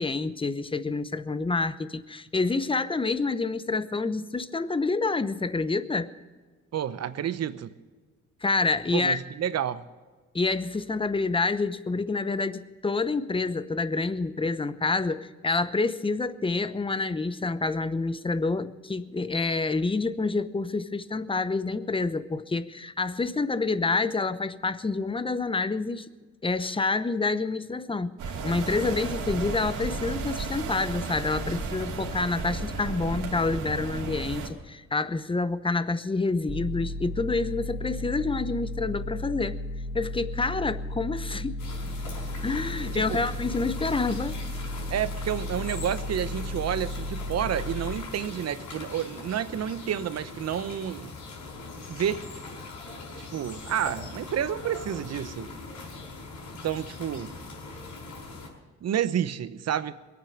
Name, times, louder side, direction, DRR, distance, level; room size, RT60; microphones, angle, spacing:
voice 1, 0.0-6.1 8.4-9.2 10.3-26.1 26.4-28.2 28.4-39.6 39.9-41.6 42.4-44.4, left 3 dB, 15° left, 14 dB, 0.8 m, -28 dB
voice 2, 6.7-7.7 8.9-9.9 42.9-43.2 44.9-51.1 51.9-52.3 53.2-55.5 56.6-57.4 58.8-59.9, right 9 dB, 60° right, 13 dB, 0.9 m, -30 dB
sound 1, 28.2-34.5, right 4 dB, 80° right, 2.7 m, -33 dB
sound 2, 36.5-47.9, left 1 dB, 20° right, 1.5 m, -34 dB
sound 3, 41.6-58.5, left 3 dB, 75° left, 5.2 m, -41 dB
22.0 x 8.9 x 6.6 m, 1.4 s
cardioid pair, 90°, 30 cm